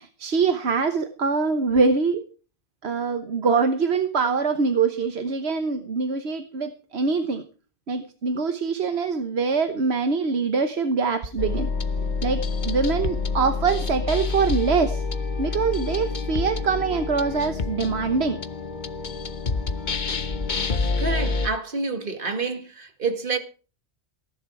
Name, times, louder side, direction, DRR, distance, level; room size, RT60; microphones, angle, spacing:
voice 1, 0.0-2.2 2.8-7.4 7.9-11.7 12.2-15.0 15.4-18.4, right 5 dB, 80° right, 1.4 m, -24 dB
sound 1, 11.4-21.5, left 4 dB, 45° left, 1.1 m, -27 dB
voice 2, 21.0-23.4, right 4 dB, 55° right, 2.2 m, -28 dB
17.5 x 10.5 x 4.6 m
omnidirectional pair, 1.1 m